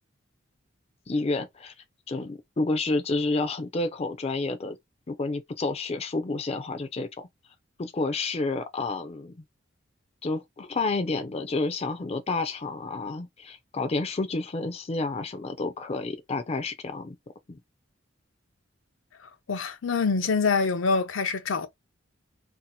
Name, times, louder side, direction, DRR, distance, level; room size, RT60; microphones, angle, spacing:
voice 1, 1.1-1.7 2.1-4.8 5.1-7.3 7.8-9.4 10.2-17.2 17.5-17.6, left 3 dB, 30° left, 0.5 m, -30 dB
voice 2, 19.5-21.7, left 4 dB, 80° left, 0.6 m, -25 dB
2.8 x 2.0 x 4.0 m
head